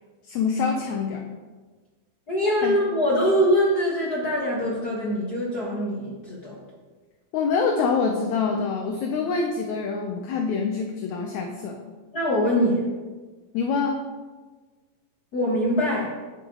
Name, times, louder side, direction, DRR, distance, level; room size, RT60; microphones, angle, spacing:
voice 1, 0.2-1.2 2.6-2.8 7.3-11.9 13.5-14.0, left 5 dB, 75° left, 3 dB, 1.8 m, -25 dB
voice 2, 2.3-6.6 12.1-12.9 15.3-16.1, equal, 50° left, -4 dB, 1.2 m, -23 dB
9.8 x 9.5 x 3.9 m, 1.3 s
omnidirectional pair, 4.1 m